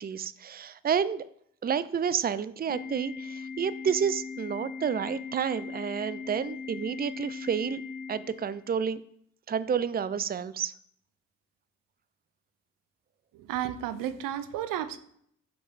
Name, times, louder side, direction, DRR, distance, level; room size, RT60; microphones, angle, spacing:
voice 1, 0.0-1.2 1.6-7.8 8.1-9.0 9.5-10.7, right 7 dB, 30° right, 15 dB, 0.5 m, -30 dB
Organ, 2.7-8.7, left 5 dB, 20° left, 2.2 m, -39 dB
voice 2, 13.3-15.0, right 11 dB, 85° right, 12 dB, 0.6 m, -32 dB
5.6 x 5.4 x 5.7 m, 0.66 s
supercardioid pair, 50°, 33 cm